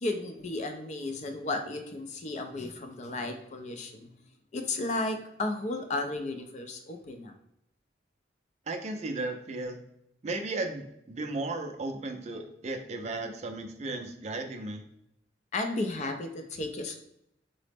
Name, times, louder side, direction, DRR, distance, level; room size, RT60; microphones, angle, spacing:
voice 1, 0.0-4.1 4.5-7.3 15.5-17.0, left 2 dB, 40° left, 5 dB, 0.4 m, -34 dB
voice 2, 8.7-9.8 10.2-14.8, right 2 dB, 40° right, 5 dB, 0.4 m, -35 dB
3.8 x 2.0 x 3.3 m, 0.77 s
head